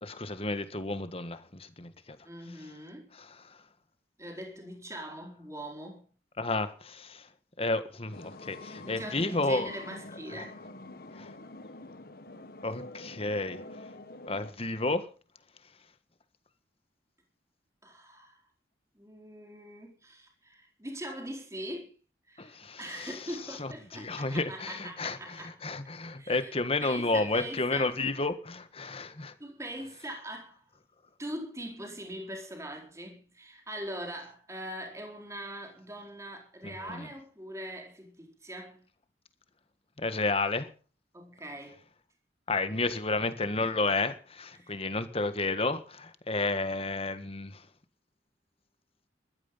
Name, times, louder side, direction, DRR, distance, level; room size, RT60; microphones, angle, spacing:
voice 1, 0.0-2.2 3.1-3.6 6.4-7.3 7.6-9.7 10.3-10.5 11.1-11.3 12.6-13.6 14.3-15.1 22.4-29.3 36.6-37.1 40.0-40.7 42.5-47.6, left 3 dB, 30° left, 1.6 m, -32 dB
voice 2, 2.2-3.1 4.2-6.0 8.8-10.6 17.8-18.4 18.9-21.9 22.3-25.6 26.2-26.5 26.8-27.9 29.4-30.6 31.2-38.8 41.1-41.8 44.5-44.7, right 1 dB, 15° right, 4.4 m, -42 dB
sound 1, 8.1-14.5, left 2 dB, 55° left, 1.6 m, -46 dB
15.0 x 13.0 x 5.7 m
head